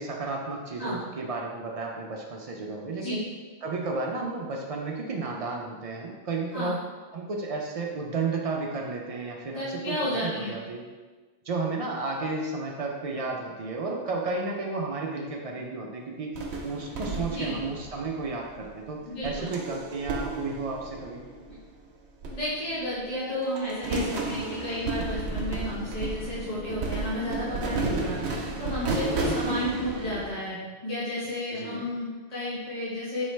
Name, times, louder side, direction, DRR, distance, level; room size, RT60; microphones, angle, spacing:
voice 1, 0.0-3.2 3.6-6.8 7.1-10.8 11.4-16.3 16.6-21.2 28.0-28.3 29.2-29.6 31.5-31.9, right 3 dB, 60° right, 0 dB, 0.4 m, -33 dB
voice 2, 9.5-10.6 17.3-17.6 19.1-19.5 22.3-33.2, left 1 dB, 40° left, -10 dB, 1.0 m, -32 dB
sound 1, 16.3-18.7 19.2-21.7 22.2-23.1 23.4-30.3, right 2 dB, 85° right, 0.9 m, -33 dB
4.1 x 3.1 x 3.1 m, 1.4 s
omnidirectional pair, 1.1 m